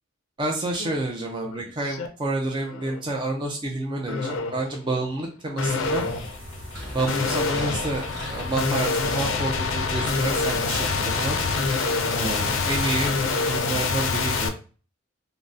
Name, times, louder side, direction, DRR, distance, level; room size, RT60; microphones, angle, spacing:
voice 1, 0.4-6.0 6.9-11.4 12.1-13.1 13.5-14.5, right 2 dB, 25° right, 0 dB, 0.3 m, -29 dB
sound 1, 0.7-0.9 1.3-2.1 2.6-3.0 4.1-4.7 5.6-14.5, left 4 dB, 80° left, 0.4 m, -26 dB
sound 2, 5.8-13.3, equal, 60° right, 1.3 m, -42 dB
sound 3, 6.7-13.6, equal, ahead, 1.1 m, -36 dB
3.6 x 2.0 x 2.5 m, 0.37 s
head